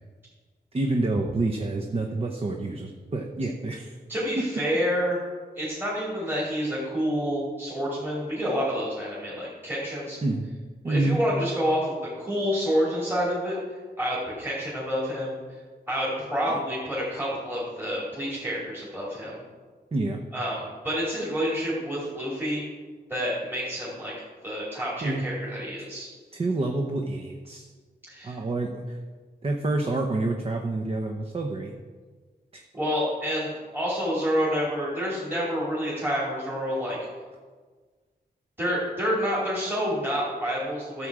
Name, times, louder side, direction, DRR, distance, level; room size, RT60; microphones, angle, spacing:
voice 1, 0.7-3.9 4.4-4.5 10.2-10.5 10.8-11.2 16.5-16.6 19.9-20.2 25.0-25.2 26.3-27.7 28.2-29.0 29.4-31.7 32.5-32.6, right 2 dB, 35° right, 3 dB, 0.8 m, -28 dB
voice 2, 4.1-5.2 5.6-10.2 10.8-13.6 14.0-15.4 15.9-19.4 20.3-22.6 23.1-24.1 24.4-26.1 28.1-28.4 32.7-37.0 38.6-41.1, equal, 10° right, -7 dB, 2.7 m, -28 dB
13.5 x 7.5 x 4.8 m, 1.5 s
wide cardioid pair, 165°, 18 cm